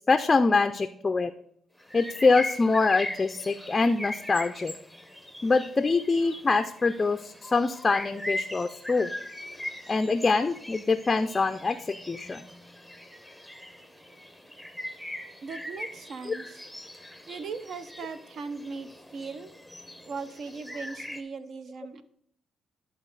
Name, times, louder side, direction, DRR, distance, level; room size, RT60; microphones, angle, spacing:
voice 1, 0.1-1.3 1.9-4.7 5.4-9.1 9.9-12.4, left 3 dB, 25° left, 8 dB, 0.4 m, -24 dB
sound 1, 1.8-21.2, left 1 dB, ahead, 0.7 m, -40 dB
voice 2, 15.4-16.6 17.3-19.5 20.0-22.0, right 4 dB, 60° right, 11 dB, 0.6 m, -38 dB
11.0 x 4.0 x 3.9 m, 0.68 s
cardioid pair, 90°, 0 cm